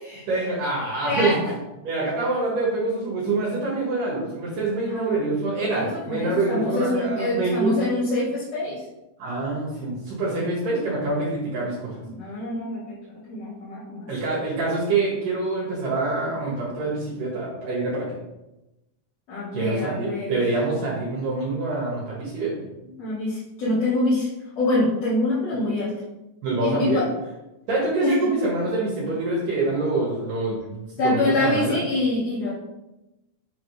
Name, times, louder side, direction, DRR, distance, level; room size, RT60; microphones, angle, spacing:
voice 1, 0.3-1.3 1.8-7.7 9.2-11.9 14.1-18.1 19.5-22.6 26.4-27.1 27.7-31.8, right 2 dB, 70° right, -5 dB, 3.0 m, -26 dB
voice 2, 1.0-1.4 4.9-5.2 5.6-8.8 12.0-14.1 19.3-20.4 23.0-24.3 24.6-25.9 26.6-27.1 28.0-28.2 31.0-32.6, left 2 dB, 50° left, -12 dB, 3.0 m, -25 dB
7.3 x 3.7 x 4.9 m, 0.98 s
omnidirectional pair, 4.1 m